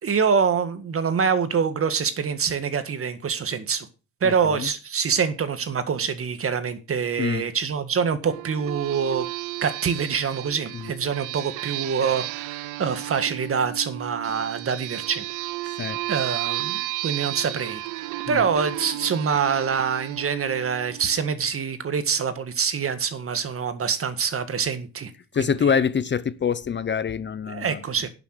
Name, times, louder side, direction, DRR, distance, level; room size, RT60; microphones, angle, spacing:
voice 1, 0.0-3.9 4.2-9.3 9.6-15.2 16.1-25.1 25.4-25.5 27.5-28.1, right 6 dB, 45° right, 1.8 m, -25 dB
voice 2, 4.2-4.7 7.2-7.4 10.7-10.9 15.7-16.0 18.3-18.4 25.3-27.8, left 7 dB, 40° left, 0.8 m, -25 dB
sound 1, 8.2-21.4, right 17 dB, 90° right, 0.5 m, -33 dB
11.0 x 7.0 x 6.6 m
cardioid pair, 90°, 30 cm